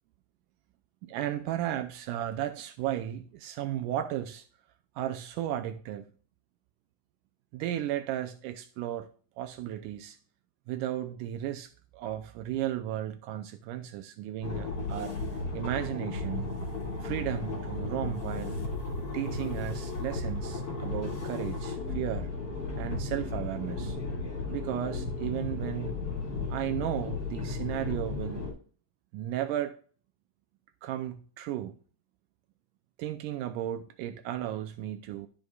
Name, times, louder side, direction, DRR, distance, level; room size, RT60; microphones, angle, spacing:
voice 1, 1.0-4.5 5.0-6.1 7.5-9.1 9.4-10.2 10.7-16.5 17.0-18.6 19.1-22.3 22.8-24.0 24.5-26.0 26.5-28.6 29.1-29.8 30.8-31.7 33.0-35.3, right 12 dB, 85° right, 2.2 m, -34 dB
sound 1, 14.4-28.5, left 3 dB, 35° left, 3.5 m, -34 dB
12.5 x 6.4 x 2.4 m
omnidirectional pair, 3.7 m